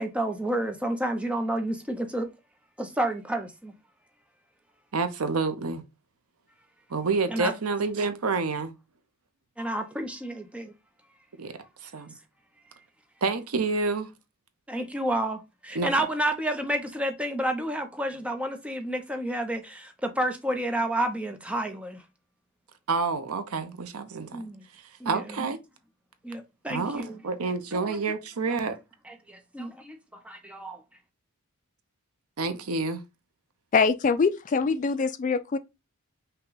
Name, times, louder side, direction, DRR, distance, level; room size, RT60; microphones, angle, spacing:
voice 1, 0.0-2.3 2.8-3.7 7.3-7.5 9.6-10.7 14.7-22.0 24.3-24.6 25.0-25.2 26.2-27.2 27.7-28.0 28.5-28.6 29.1-30.0 30.2-30.8, right 1 dB, 5° right, 0.6 m, -30 dB
voice 2, 4.9-5.8 6.9-8.7 11.4-11.5 11.8-12.1 13.2-14.1 15.7-16.1 22.9-24.4 24.7-25.6 26.7-28.8 32.4-33.0, right 4 dB, 75° right, 0.7 m, -28 dB
voice 3, 33.7-35.6, left 5 dB, 35° left, 0.3 m, -23 dB
5.6 x 2.3 x 3.9 m
head